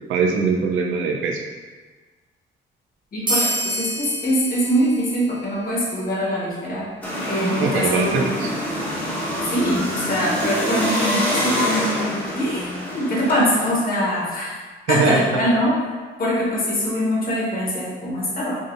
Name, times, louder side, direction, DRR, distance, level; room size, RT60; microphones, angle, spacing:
voice 1, 0.1-1.4 7.6-8.5 14.9-15.2, right 5 dB, 75° right, 2 dB, 0.6 m, -21 dB
voice 2, 3.1-6.8 7.3-8.4 9.5-14.6 14.9-15.7 16.2-18.6, equal, 45° left, -5 dB, 1.4 m, -23 dB
sound 1, 3.3-6.3, right 1 dB, 25° right, 0.8 m, -28 dB
sound 2, 7.0-13.7, equal, 5° left, 1.1 m, -25 dB
4.8 x 2.7 x 2.6 m, 1.4 s
cardioid pair, 90°, 20 cm